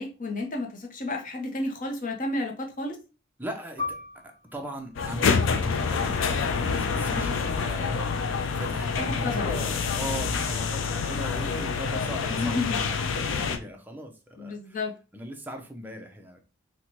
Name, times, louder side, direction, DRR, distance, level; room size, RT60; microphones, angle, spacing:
voice 1, 0.0-3.0 9.0-9.5 12.3-12.8 14.4-14.9, left 2 dB, 45° left, 0.7 m, -31 dB
voice 2, 3.4-8.1 8.5-14.8 15.1-16.4, equal, 10° right, 0.5 m, -39 dB
Piano, 3.8-8.8 9.2-9.3 10.1-10.5, left 4 dB, 20° left, 1.3 m, -41 dB
sound 1, 5.0-13.6, left 5 dB, 80° left, 0.4 m, -27 dB
4.1 x 2.2 x 2.9 m
head